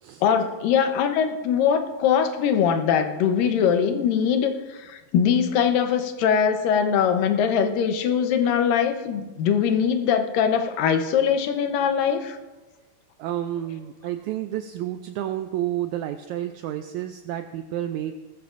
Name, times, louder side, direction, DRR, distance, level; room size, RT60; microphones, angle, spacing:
voice 1, 0.2-12.4, left 7 dB, 85° left, 7 dB, 2.6 m, -22 dB
voice 2, 13.2-18.2, right 12 dB, 85° right, 8 dB, 1.7 m, -30 dB
19.0 x 13.5 x 2.5 m, 1.2 s
omnidirectional pair, 3.9 m